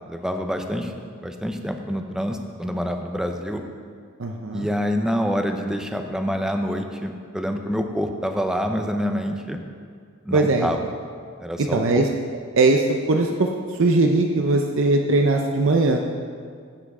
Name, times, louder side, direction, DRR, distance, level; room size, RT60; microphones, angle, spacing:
voice 1, 0.1-0.9 1.2-3.6 4.5-9.6 10.2-10.8 11.4-12.0, equal, 5° right, 4 dB, 0.6 m, -26 dB
voice 2, 4.2-4.7 10.3-10.7 11.6-12.1 12.6-13.5 13.8-16.0, right 2 dB, 60° right, 2 dB, 0.6 m, -20 dB
16.0 x 5.8 x 4.8 m, 2.1 s
head